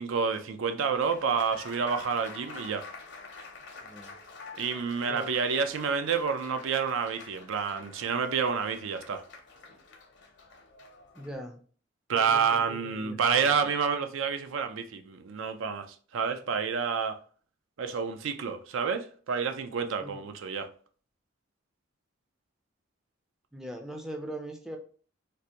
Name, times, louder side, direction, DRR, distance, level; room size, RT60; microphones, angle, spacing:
voice 1, 0.0-2.9 4.6-9.2 12.1-17.2 17.8-20.7, right 6 dB, 80° right, 0.4 m, -29 dB
Applause, 0.9-11.3, left 4 dB, 60° left, 0.6 m, -47 dB
voice 2, 3.8-4.1 5.1-5.3 11.1-11.6 12.1-13.7 20.0-20.2 23.5-24.8, right 1 dB, 5° right, 0.3 m, -41 dB
3.3 x 2.5 x 2.8 m
head